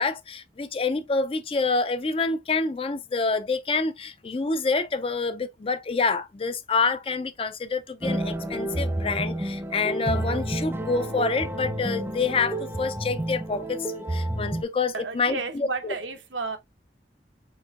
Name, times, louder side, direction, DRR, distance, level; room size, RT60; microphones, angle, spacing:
voice 1, 0.0-15.9, left 4 dB, 30° left, 0.4 m, -27 dB
sound 1, 8.0-14.6, right 1 dB, 10° right, 0.6 m, -30 dB
voice 2, 14.9-16.6, right 3 dB, 90° right, 1.1 m, -32 dB
4.7 x 4.4 x 2.4 m
head